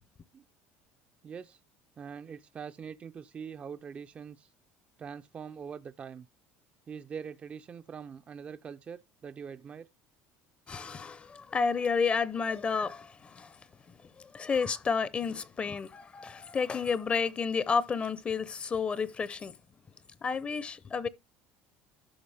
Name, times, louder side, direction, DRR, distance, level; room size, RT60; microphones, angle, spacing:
voice 1, 1.2-1.6 2.0-4.5 5.0-6.3 6.9-9.9, right 7 dB, 25° right, 0.4 m, -43 dB
voice 2, 10.7-13.6 14.2-19.5 20.2-21.1, left 5 dB, 25° left, 0.6 m, -31 dB
12.5 x 6.1 x 3.4 m
cardioid pair, 135°, 5 cm